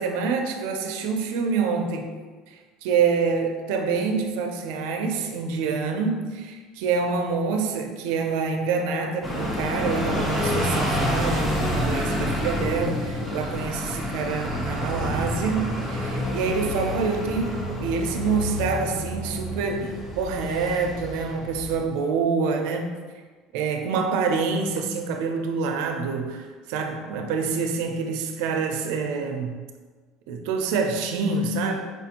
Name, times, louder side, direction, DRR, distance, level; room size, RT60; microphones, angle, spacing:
voice 1, 0.0-2.1 2.5-22.9 23.5-29.6 30.3-31.8, right 5 dB, 80° right, 4 dB, 0.4 m, -26 dB
sound 1, 9.2-21.8, left 1 dB, 15° left, 0.7 m, -28 dB
4.6 x 2.5 x 2.8 m, 1.4 s
cardioid pair, 140°, 0 cm